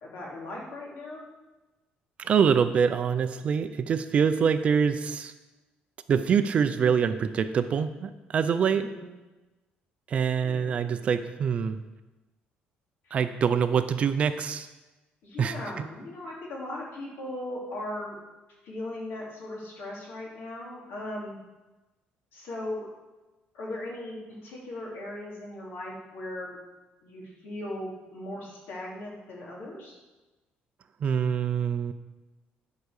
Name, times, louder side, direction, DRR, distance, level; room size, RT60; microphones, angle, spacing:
voice 1, 0.0-1.3 8.6-9.1 10.4-10.7 13.0-13.2 15.2-18.2 18.6-21.4 22.3-22.9 23.5-26.6 27.0-30.0, left 1 dB, 70° left, -3 dB, 3.1 m, -38 dB
voice 2, 2.2-5.3 6.1-8.9 10.1-11.8 13.1-14.7 15.4-15.9 31.0-31.9, right 7 dB, 35° right, 10 dB, 0.5 m, -25 dB
11.0 x 4.8 x 6.5 m, 1.1 s
cardioid pair, 175°, 4 cm